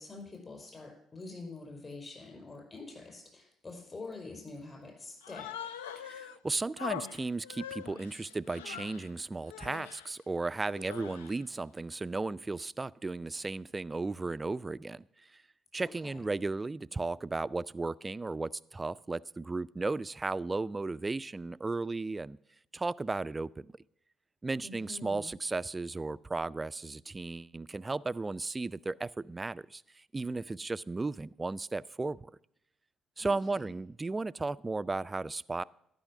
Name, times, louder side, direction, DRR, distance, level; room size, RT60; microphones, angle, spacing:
voice 1, 0.0-5.8 15.8-16.3 24.6-25.3 33.2-33.7, left 3 dB, 35° left, 5.0 m, -46 dB
Human voice, 5.2-6.4 6.8-9.1 9.5-10.1 10.7-11.4, left 9 dB, 85° left, 0.4 m, -43 dB
voice 2, 6.0-15.1 15.3-15.4 15.7-22.4 22.7-23.7 24.4-32.3 33.2-35.6, right 3 dB, 25° right, 0.3 m, -35 dB
12.0 x 5.6 x 7.3 m
hypercardioid pair, 50°, 0 cm